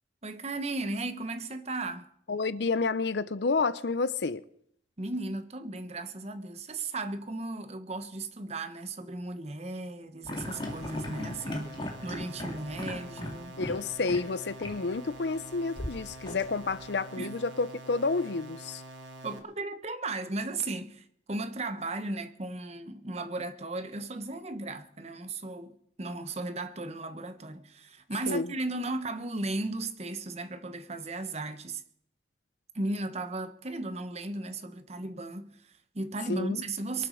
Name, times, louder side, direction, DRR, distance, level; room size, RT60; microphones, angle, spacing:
voice 1, 0.2-2.1 5.0-13.6 17.2-17.4 19.2-31.8 32.7-37.1, right 2 dB, 35° right, 1.0 m, -36 dB
voice 2, 2.3-4.4 13.6-18.8 28.3-28.5 36.3-36.6, left 4 dB, 65° left, 0.6 m, -30 dB
sound 1, 10.2-13.8 14.0-14.2 14.6-14.8 15.7-16.8, left 1 dB, 25° left, 2.2 m, -37 dB
sound 2, 10.4-19.4, right 2 dB, 85° right, 2.4 m, -46 dB
22.5 x 8.1 x 6.4 m
head